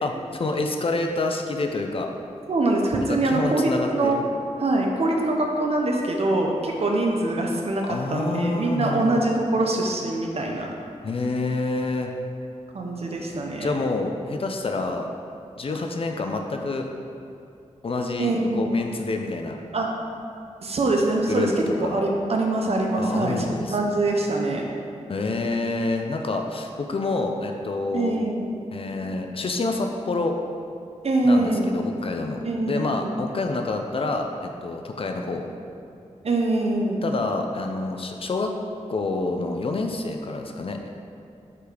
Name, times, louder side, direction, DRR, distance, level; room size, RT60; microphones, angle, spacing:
voice 1, 0.0-2.1 3.1-4.2 7.9-9.3 11.0-12.1 13.6-15.1 15.6-16.9 17.8-19.6 21.2-22.0 23.0-23.9 25.1-28.2 28.7-30.3 31.2-32.4 32.7-35.5 37.0-38.5 38.9-40.9, left 3 dB, 50° left, 3 dB, 0.5 m, -28 dB
voice 2, 2.5-4.3 4.6-10.7 12.7-13.7 18.2-18.7 19.7-19.9 20.6-24.7 27.9-28.5 31.0-31.7 32.4-33.1 36.2-37.0, right 2 dB, 55° right, 1 dB, 0.7 m, -24 dB
5.5 x 4.0 x 4.9 m, 2.6 s
wide cardioid pair, 130°, 12 cm